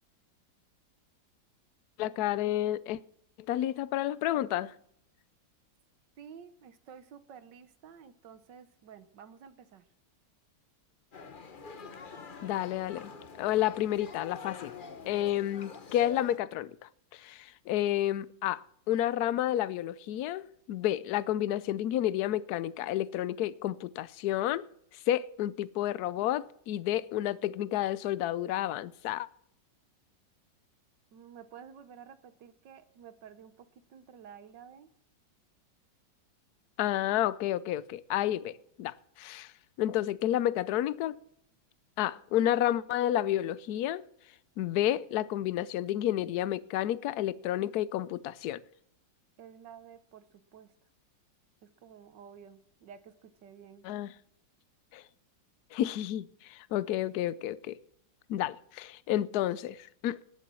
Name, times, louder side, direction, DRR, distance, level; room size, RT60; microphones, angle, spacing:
voice 1, 2.0-3.0 3.5-4.7 12.4-13.1 13.4-14.7 15.1-16.7 17.1-24.6 25.1-29.3 36.8-39.5 39.8-41.2 42.0-44.0 44.6-48.6 53.8-54.1 54.9-55.0 55.7-57.8 58.3-60.2, left 12 dB, 65° left, 1.0 m, -30 dB
voice 2, 6.2-9.8 31.1-34.9 49.4-50.7 51.6-53.9, right 7 dB, 70° right, 1.6 m, -52 dB
sound 1, 11.1-16.4, left 5 dB, 35° left, 0.9 m, -46 dB
18.5 x 7.3 x 6.2 m
omnidirectional pair, 2.0 m